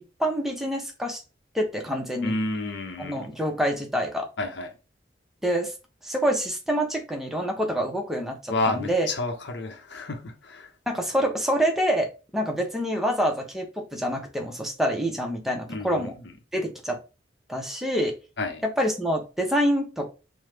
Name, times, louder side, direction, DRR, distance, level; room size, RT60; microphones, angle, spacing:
voice 1, 0.2-1.2 1.5-2.3 3.0-4.3 5.4-5.7 6.0-9.1 10.9-16.1 16.5-17.0 17.5-18.2 18.6-20.1, equal, ahead, 0.5 m, -26 dB
voice 2, 2.2-3.3 4.4-4.7 8.5-10.7 15.7-16.1 18.4-18.6, left 2 dB, 70° left, 0.7 m, -30 dB
3.0 x 2.0 x 3.2 m
head